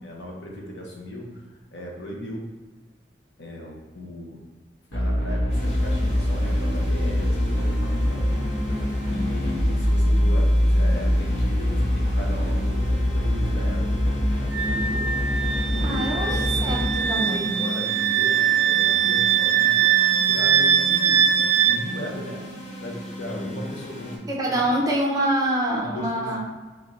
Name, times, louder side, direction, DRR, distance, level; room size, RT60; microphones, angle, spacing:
voice 1, 0.0-2.5 3.4-4.4 4.9-8.4 9.1-13.9 14.4-15.1 15.7-22.4 22.8-24.7 25.7-26.4, equal, 90° left, -1 dB, 0.9 m, -37 dB
sound 1, 4.9-16.9, equal, 65° left, 1.4 m, -23 dB
sound 2, 5.5-24.2, left 1 dB, 40° left, 1.2 m, -36 dB
Wind instrument woodwind instrument, 14.5-21.8, right 9 dB, 75° right, 0.3 m, -21 dB
voice 2, 15.8-16.3 16.6-17.5 24.3-26.4, right 1 dB, 20° right, -3 dB, 0.7 m, -25 dB
3.3 x 3.2 x 3.8 m, 1.3 s
head